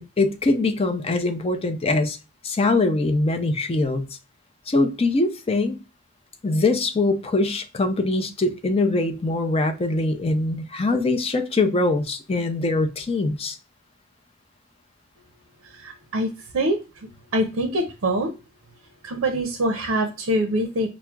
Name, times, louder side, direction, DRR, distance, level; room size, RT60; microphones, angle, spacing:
voice 1, 0.0-2.2 2.4-4.1 4.7-5.8 6.4-13.6, left 2 dB, 30° left, 0.5 m, -22 dB
voice 2, 15.7-16.3 16.5-16.8 17.3-18.3 19.0-20.9, right 1 dB, 70° right, 0.6 m, -24 dB
5.8 x 2.0 x 2.2 m
head